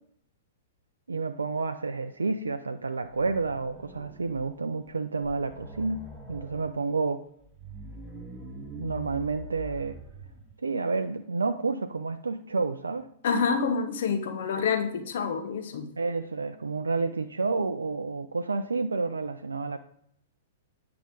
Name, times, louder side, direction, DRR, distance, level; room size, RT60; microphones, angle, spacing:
voice 1, 1.1-6.0 6.3-7.2 8.7-10.0 10.6-13.1 16.0-19.8, right 4 dB, 80° right, 8 dB, 0.4 m, -30 dB
sound 1, 3.0-4.5 4.9-5.0 5.2-6.8 7.4-10.5, right 1 dB, 10° right, 3.2 m, -44 dB
voice 2, 13.2-15.9, left 5 dB, 60° left, 8 dB, 0.9 m, -27 dB
9.1 x 5.7 x 3.8 m, 0.72 s
figure-of-eight pair, 110°, 0 cm